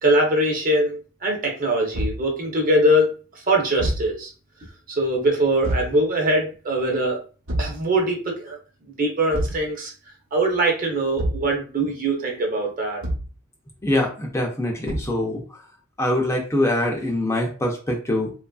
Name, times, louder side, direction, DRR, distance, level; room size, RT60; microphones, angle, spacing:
voice 1, 0.0-4.3 4.9-7.2 7.6-8.6 8.9-9.9 10.3-13.0, right 1 dB, 40° right, 1 dB, 0.7 m, -22 dB
Thump thud, 1.9-2.3 3.8-4.1 5.6-6.0 7.5-7.8 9.3-9.7 11.2-11.5 13.0-13.4 14.9-15.2, right 1 dB, 70° right, 0.9 m, -26 dB
voice 2, 13.8-15.6 16.0-18.3, left 1 dB, 15° left, 0 dB, 0.4 m, -24 dB
2.9 x 2.4 x 2.3 m, 0.37 s
head